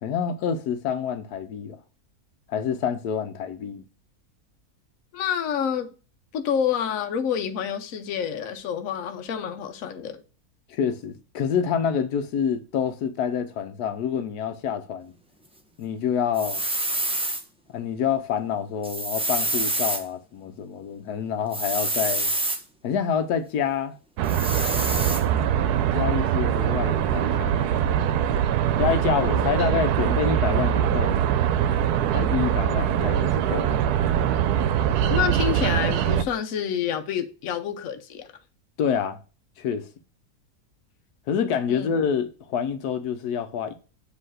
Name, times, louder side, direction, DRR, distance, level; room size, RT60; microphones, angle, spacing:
voice 1, 0.0-1.8 2.5-3.8 10.7-15.1 15.8-16.6 17.7-22.3 22.8-23.9 25.9-27.7 28.8-31.2 32.1-33.7 38.8-39.2 39.6-39.9 41.3-43.7, left 7 dB, 85° left, 1.2 m, -27 dB
voice 2, 5.1-5.9 6.3-10.2 35.1-38.3 41.7-41.9, left 8 dB, 65° left, 1.1 m, -28 dB
sound 1, 16.3-17.4 18.8-20.0 21.5-22.6 24.2-25.2, right 1 dB, 10° right, 0.4 m, -27 dB
sound 2, 24.2-36.2, right 9 dB, 80° right, 1.1 m, -23 dB
7.7 x 3.2 x 6.3 m
omnidirectional pair, 1.6 m